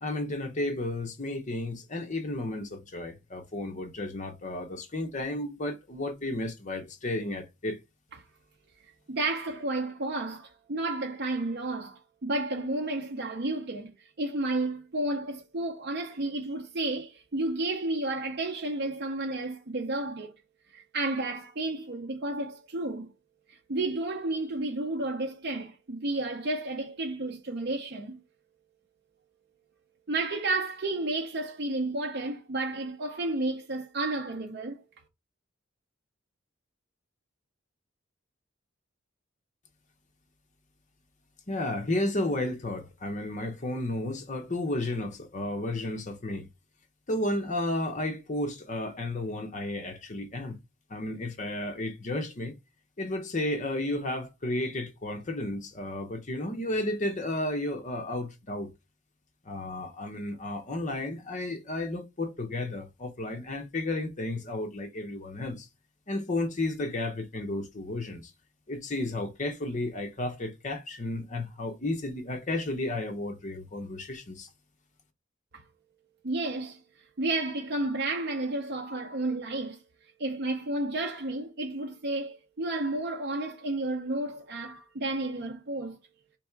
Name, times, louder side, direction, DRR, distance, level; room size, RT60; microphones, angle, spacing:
voice 1, 0.0-7.8 41.5-46.5 47.1-50.6 50.9-52.6 53.0-58.7 59.4-65.7 66.1-68.3 68.7-74.5, left 1 dB, 35° left, 0.8 m, -33 dB
voice 2, 9.1-20.3 20.7-23.1 23.5-28.2 30.1-34.8 75.5-75.6 76.2-76.8 77.2-79.8 80.2-86.0, right 2 dB, 50° right, 0.6 m, -32 dB
3.4 x 3.2 x 4.6 m
head